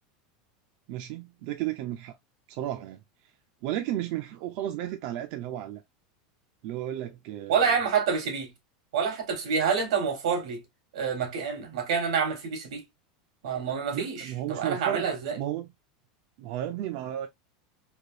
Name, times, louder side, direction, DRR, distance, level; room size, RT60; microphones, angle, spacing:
voice 1, 0.9-2.2 2.5-3.0 3.6-5.8 6.6-7.8 13.9-15.1 15.4-15.7 16.4-17.3, right 12 dB, 50° right, 0.4 m, -33 dB
voice 2, 7.5-8.5 8.9-10.6 10.9-12.8 13.4-15.4, right 6 dB, 90° right, 1.4 m, -27 dB
3.3 x 2.6 x 2.5 m
supercardioid pair, 165°, 3 cm